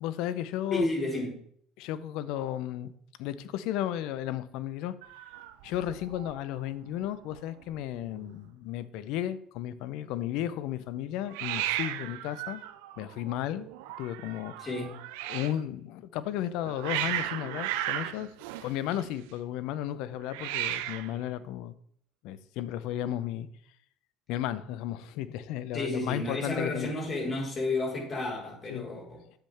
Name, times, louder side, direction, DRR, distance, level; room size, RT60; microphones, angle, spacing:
voice 1, 0.0-0.9 1.8-2.9 3.2-4.9 5.6-12.6 13.0-13.7 14.0-14.5 15.3-18.3 18.6-21.7 22.2-23.5 24.3-26.9 28.7-28.9, left 12 dB, 70° left, 0.7 m, -34 dB
voice 2, 0.7-1.4 14.6-15.1 25.7-29.2, left 2 dB, 35° left, 4.3 m, -32 dB
Hiss, 5.0-6.4 6.6-7.1 7.3-7.4 7.6-8.3 11.3-15.6 16.4-19.3 20.2-21.2, right 13 dB, 75° right, 0.6 m, -36 dB
10.5 x 7.6 x 3.5 m
hypercardioid pair, 65°, 0 cm